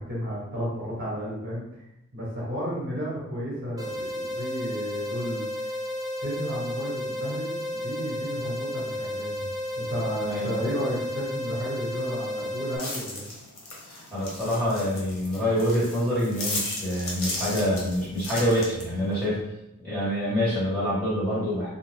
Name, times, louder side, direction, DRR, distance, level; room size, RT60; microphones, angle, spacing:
voice 1, 0.0-1.8 2.1-5.5 6.2-9.5 9.8-13.3, equal, 45° right, -7 dB, 1.2 m, -33 dB
sound 1, 3.8-12.8, left 1 dB, 20° right, 0.3 m, -32 dB
sound 2, 12.8-19.2, left 2 dB, 75° left, 0.9 m, -36 dB
voice 2, 14.1-19.4 19.8-21.7, equal, 5° left, -11 dB, 1.5 m, -26 dB
2.6 x 2.3 x 3.3 m, 0.86 s
head